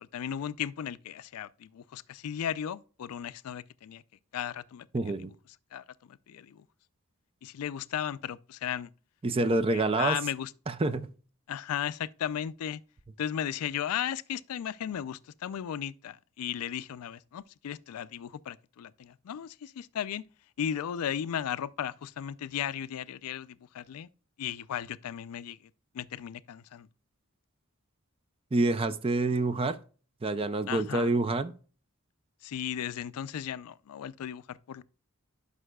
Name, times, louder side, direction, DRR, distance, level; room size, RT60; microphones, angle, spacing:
voice 1, 0.0-4.0 4.3-5.1 5.7-6.7 7.4-8.9 9.4-10.5 11.5-12.8 13.2-20.2 20.6-24.1 24.4-26.9 30.7-31.1 32.4-34.8, left 9 dB, 90° left, 0.4 m, -36 dB
voice 2, 4.9-5.3 9.2-10.2 10.7-11.1 28.5-29.8 30.2-31.5, right 2 dB, 25° right, 0.4 m, -27 dB
11.0 x 5.5 x 2.2 m
head